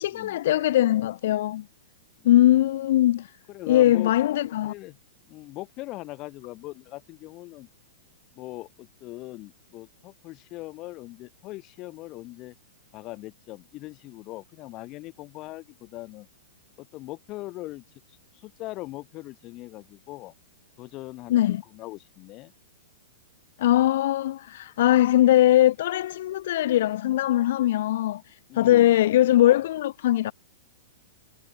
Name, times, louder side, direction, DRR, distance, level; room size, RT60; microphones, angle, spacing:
voice 1, 0.0-1.6 2.2-3.3 3.7-4.7 21.3-21.6 23.6-28.2 28.5-30.3, left 13 dB, 60° left, 0.4 m, -21 dB
voice 2, 3.5-4.1 4.7-5.0 5.3-7.7 8.3-12.5 12.9-16.3 16.8-20.3 20.8-22.5 28.5-29.0, left 19 dB, 30° left, 0.8 m, -40 dB
hypercardioid pair, 150°, 0 cm